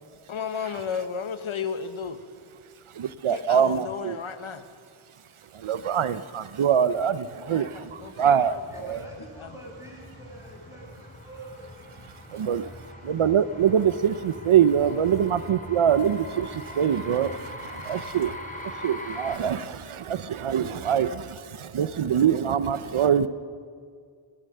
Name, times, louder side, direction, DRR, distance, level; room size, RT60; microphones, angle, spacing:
voice 1, 0.3-2.2 3.3-4.6 7.5-9.0 9.4-9.5, left 6 dB, 75° left, 10 dB, 1.3 m, -34 dB
voice 2, 2.9-4.2 5.5-9.0 12.3-12.6 13.1-18.4 18.8-23.3, right 8 dB, 80° right, 14 dB, 0.7 m, -24 dB
sound 1, 6.6-19.4, left 1 dB, 15° left, 3.7 m, -42 dB
voice 3, 8.7-11.7, right 1 dB, 5° right, -3 dB, 7.3 m, -45 dB
22.0 x 18.5 x 6.7 m, 2.1 s
wide cardioid pair, 70°, 48 cm